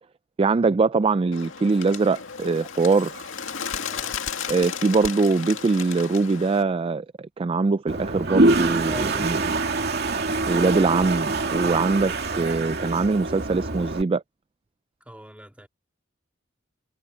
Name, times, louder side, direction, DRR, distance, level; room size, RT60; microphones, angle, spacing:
voice 1, 0.4-3.3 4.5-9.6 10.5-14.2, right 4 dB, 30° right, 0.3 m, -22 dB
Bird, 1.3-6.6, left 7 dB, 80° left, 2.2 m, -34 dB
voice 2, 3.7-4.1 8.8-9.5 15.1-15.7, right 1 dB, 5° right, 2.2 m, -41 dB
Toilet flush, 7.9-14.0, right 2 dB, 55° right, 2.4 m, -25 dB
head